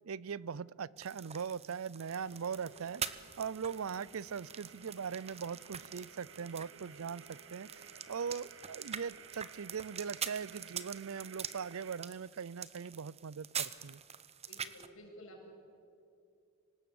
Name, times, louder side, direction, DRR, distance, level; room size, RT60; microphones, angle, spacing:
voice 1, 0.0-14.0, right 6 dB, 85° right, 22 dB, 0.5 m, -41 dB
sound 1, 1.0-14.9, right 8 dB, 30° right, 0.9 m, -45 dB
sound 2, 2.1-12.0, right 6 dB, 65° right, 1.5 m, -56 dB
voice 2, 2.6-3.0 14.4-15.5, equal, 80° left, -1 dB, 7.5 m, -54 dB
25.0 x 18.5 x 8.7 m, 2.4 s
head